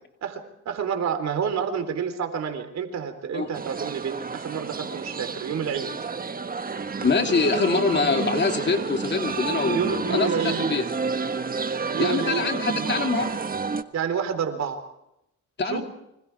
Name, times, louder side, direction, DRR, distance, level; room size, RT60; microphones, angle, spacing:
voice 1, 0.2-5.9 9.7-10.7 11.9-13.1 13.9-14.8 15.7-15.8, right 7 dB, 60° right, 7 dB, 3.9 m, -29 dB
sound 1, 3.5-13.8, right 5 dB, 30° right, 1.4 m, -30 dB
voice 2, 7.0-10.8 12.0-13.3 15.6-15.8, left 4 dB, 35° left, 4 dB, 3.1 m, -24 dB
28.5 x 26.0 x 4.8 m, 0.84 s
cardioid pair, 90°, 30 cm